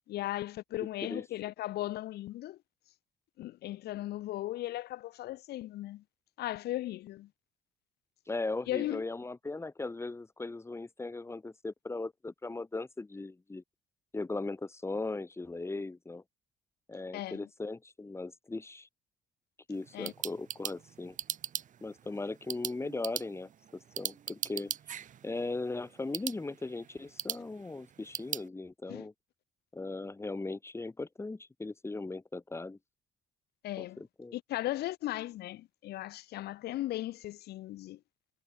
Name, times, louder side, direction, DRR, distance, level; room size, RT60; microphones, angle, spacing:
voice 1, 0.1-2.6 3.4-6.0 6.4-7.3 8.7-9.0 17.1-17.4 19.9-20.1 28.9-29.1 33.6-34.0 34.3-38.0, left 15 dB, 75° left, 1.7 m, -37 dB
voice 2, 8.3-13.6 14.1-16.2 16.9-18.9 19.7-21.2 21.8-24.7 25.2-29.1 29.7-32.8 33.8-34.4, left 3 dB, 15° left, 3.8 m, -38 dB
sound 1, 19.7-28.5, right 9 dB, 50° right, 1.7 m, -41 dB
cardioid pair, 110°, 17 cm